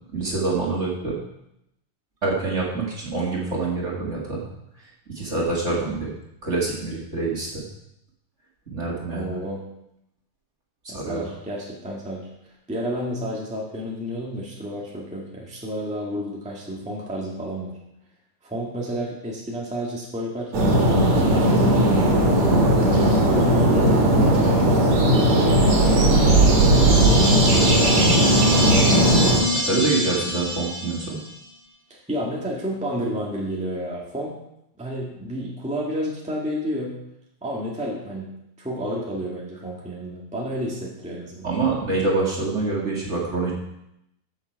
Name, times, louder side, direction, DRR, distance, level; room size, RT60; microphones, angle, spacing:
voice 1, 0.1-1.2 2.2-4.4 5.1-6.1 6.4-7.6 8.7-9.3 10.8-11.2 29.5-31.2 41.4-43.5, right 3 dB, 25° right, -4 dB, 2.0 m, -26 dB
voice 2, 9.1-9.7 10.9-12.3 12.7-17.7 18.4-22.4 23.0-26.3 26.9-27.8 31.9-34.3 34.8-37.0 37.4-38.3 38.6-41.5, equal, 5° right, -4 dB, 0.6 m, -31 dB
sound 1, 20.5-29.4, right 1 dB, 55° right, 3.2 m, -17 dB
sound 2, 26.0-31.4, left 1 dB, 30° left, 3.6 m, -25 dB
14.0 x 6.6 x 4.7 m, 0.82 s
omnidirectional pair, 4.0 m